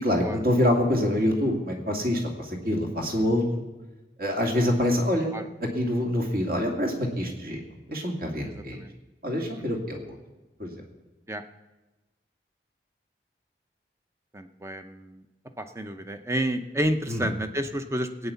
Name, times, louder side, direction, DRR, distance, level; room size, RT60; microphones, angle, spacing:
voice 1, 0.0-3.6 4.2-5.4 5.7-7.6 7.9-8.8 9.2-10.2 10.6-10.7 17.1-17.3, left 1 dB, 55° right, 1 dB, 2.5 m, -26 dB
voice 2, 8.5-8.9 9.6-9.8 11.3-11.4 14.3-15.2 15.6-18.3, right 1 dB, 15° right, 8 dB, 0.7 m, -30 dB
16.5 x 9.1 x 7.0 m, 1.1 s
head